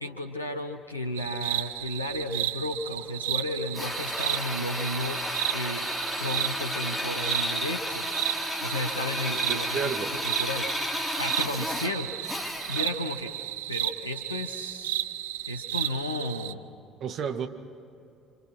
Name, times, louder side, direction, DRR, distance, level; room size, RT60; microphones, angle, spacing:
voice 1, 0.0-5.2 5.5-5.9 6.2-8.1 8.6-9.9 10.2-10.7 11.2-12.3 12.7-13.3 13.7-15.0 15.5-16.6, left 1 dB, 85° left, 6 dB, 1.1 m, -33 dB
sound 1, 1.2-16.5, right 14 dB, 70° right, 0.5 m, -33 dB
Drill, 3.7-13.0, left 1 dB, 10° left, 2.9 m, -32 dB
voice 2, 9.3-10.1 17.0-17.5, right 7 dB, 50° right, 7 dB, 1.7 m, -32 dB
28.0 x 26.5 x 6.1 m, 2.5 s
figure-of-eight pair, 55°, 0 cm